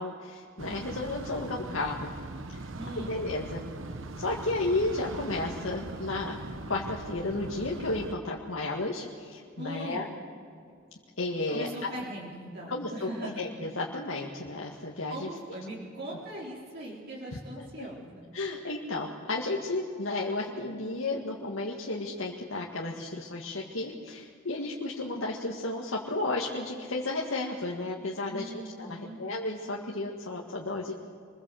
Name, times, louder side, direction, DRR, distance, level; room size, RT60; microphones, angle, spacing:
voice 1, 0.0-2.1 2.5-2.6 3.0-3.6 4.2-6.3 6.7-10.1 11.2-11.9 12.7-15.3 17.8-17.9 18.3-30.9, left 2 dB, 85° left, -2 dB, 1.9 m, -33 dB
sound 1, 0.6-8.1, right 2 dB, 70° right, 1.2 m, -40 dB
voice 2, 2.7-3.1 9.6-10.0 11.5-13.4 15.1-18.2 28.3-29.2, right 1 dB, 55° right, -5 dB, 3.9 m, -40 dB
26.0 x 21.5 x 7.8 m, 2.3 s
head